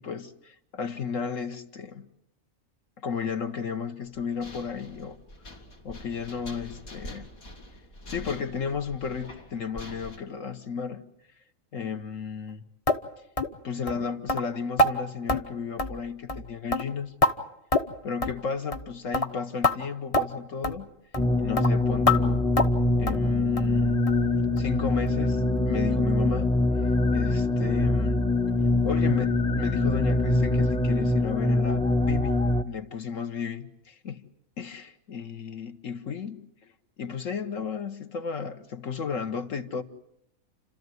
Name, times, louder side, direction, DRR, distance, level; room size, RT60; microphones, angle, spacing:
voice 1, 0.0-2.1 3.0-5.2 5.8-7.3 8.1-11.1 11.7-12.6 13.6-17.1 18.0-20.9 21.4-22.5 23.0-24.1 24.6-26.5 27.1-28.3 28.8-32.4 32.6-34.2 34.6-36.5 37.0-39.8, left 6 dB, 65° left, 1.6 m, -33 dB
sound 1, 4.0-10.2, left 1 dB, 85° left, 3.2 m, -45 dB
sound 2, 12.9-13.0 13.4-13.5 13.9-14.0 14.3-14.4 14.8-14.9 15.3-15.4 15.8-16.0 16.3-16.4 16.7-17.3 17.7-17.9 18.2-18.4 18.7-18.9 19.1-19.3 19.6-19.8 20.1-20.3 20.6-20.8 21.1-21.3 21.6-21.7 22.1-22.2 22.6-22.8 23.1-23.2 23.6-23.7 24.1-24.2 24.6-24.7 25.1-25.2, left 1 dB, 30° left, 0.9 m, -24 dB
sound 3, 21.2-32.6, left 2 dB, 5° left, 0.5 m, -24 dB
30.0 x 13.5 x 9.4 m
omnidirectional pair, 1.4 m